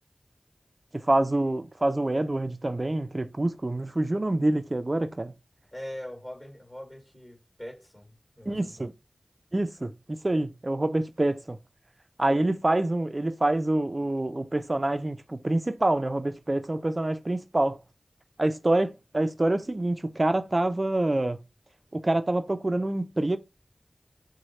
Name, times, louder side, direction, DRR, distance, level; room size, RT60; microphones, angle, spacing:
voice 1, 1.0-5.3 8.5-8.9 9.5-11.6 12.2-17.8 18.4-21.4 21.9-23.4, right 1 dB, 40° right, 0.3 m, -26 dB
voice 2, 5.7-8.9, equal, 25° left, 1.7 m, -42 dB
3.0 x 2.1 x 4.1 m
wide cardioid pair, 65°, 0 cm